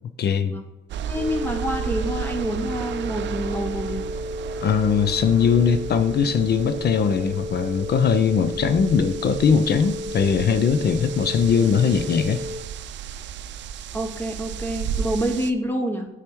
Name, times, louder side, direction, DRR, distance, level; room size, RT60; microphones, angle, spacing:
voice 1, 0.2-0.6 4.6-12.4, left 6 dB, 55° left, 10 dB, 0.7 m, -20 dB
sound 1, 0.9-15.5, right 8 dB, 65° right, 0.5 m, -34 dB
voice 2, 1.0-4.0 13.9-16.1, right 1 dB, 10° left, 3 dB, 0.9 m, -27 dB
sound 2, 1.2-12.6, left 1 dB, 15° right, 2.1 m, -34 dB
8.5 x 4.9 x 4.6 m, 0.98 s
cardioid pair, 90°, 20 cm